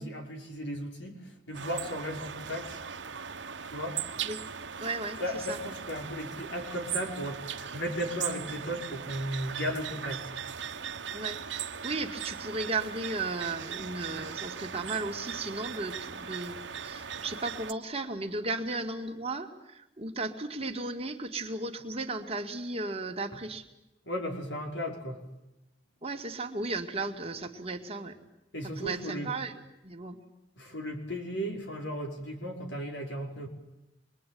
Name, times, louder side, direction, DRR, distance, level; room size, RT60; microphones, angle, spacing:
voice 1, 0.0-2.8 3.6-4.1 5.2-10.3 24.0-25.2 28.5-29.3 30.6-33.5, equal, 75° left, 3 dB, 5.8 m, -35 dB
sound 1, 1.5-17.7, right 7 dB, 75° right, 1.2 m, -39 dB
voice 2, 4.8-5.6 11.1-23.6 26.0-28.2 28.8-29.5 29.8-30.2, right 3 dB, 35° right, 4 dB, 2.4 m, -35 dB
27.0 x 22.0 x 9.5 m, 0.92 s
head